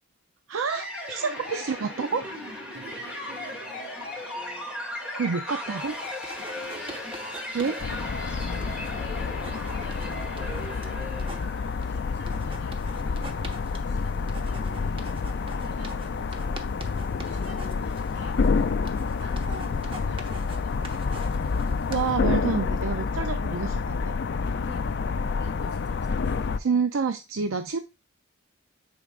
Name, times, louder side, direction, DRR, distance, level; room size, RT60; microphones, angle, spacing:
voice 1, 0.5-2.2 5.1-6.0 7.5-7.8 21.9-24.1 26.6-27.8, right 5 dB, 85° right, 0.5 m, -28 dB
sound 1, 0.7-11.8, left 1 dB, 5° right, 2.3 m, -37 dB
voice 2, 1.5-1.9 2.7-4.8 6.4-7.2 7.7-11.5 11.8-18.4 19.2-21.9 23.3-23.6 24.6-26.5, right 2 dB, 60° right, 3.3 m, -50 dB
sound 2, 5.8-22.1, right 2 dB, 25° right, 0.9 m, -46 dB
sound 3, 7.8-26.6, left 4 dB, 55° left, 0.4 m, -28 dB
9.9 x 4.9 x 2.4 m
head